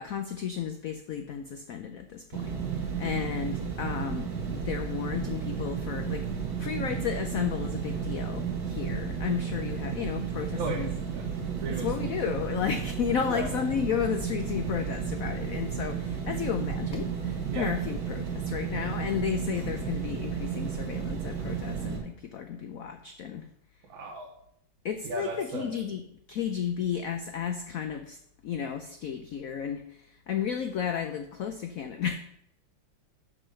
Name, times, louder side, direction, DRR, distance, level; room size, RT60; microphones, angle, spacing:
voice 1, 0.0-10.9 11.7-23.5 24.8-26.0 26.3-28.2 28.4-32.2, left 8 dB, 85° left, 7 dB, 0.7 m, -33 dB
sound 1, 2.3-22.0, right 7 dB, 50° right, 1.9 m, -33 dB
voice 2, 11.6-12.4 13.3-13.5 17.5-17.7 19.5-19.7 23.9-24.3 25.0-25.8, right 3 dB, 75° right, 0 dB, 1.8 m, -36 dB
6.4 x 6.1 x 6.3 m, 0.72 s
omnidirectional pair, 2.2 m